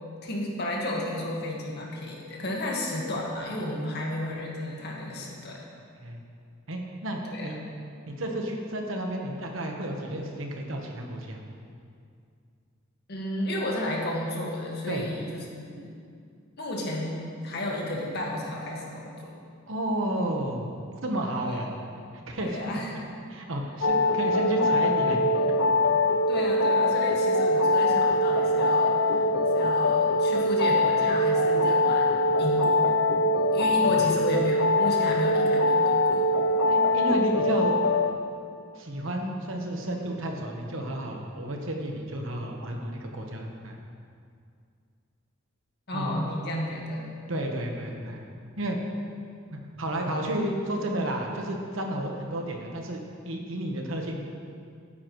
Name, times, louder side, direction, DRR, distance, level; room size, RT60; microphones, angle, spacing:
voice 1, 0.2-5.6 7.2-7.6 13.1-15.9 16.6-19.3 21.4-21.6 22.4-22.9 26.3-29.3 29.5-33.0 33.5-36.3 45.9-47.1 47.3-47.4, left 1 dB, 55° left, -2 dB, 1.8 m, -32 dB
voice 2, 6.7-7.6 8.1-11.4 14.9-15.0 19.7-20.7 21.0-21.7 22.3-22.8 23.3-25.3 33.8-34.0 36.7-37.7 38.7-43.8 45.9-46.2 47.3-48.2 48.6-48.8 49.5-54.2, right 1 dB, 70° right, 2 dB, 1.2 m, -32 dB
sound 1, 23.8-38.1, left 1 dB, 80° left, 0.7 m, -23 dB
13.0 x 9.6 x 3.2 m, 2.3 s
head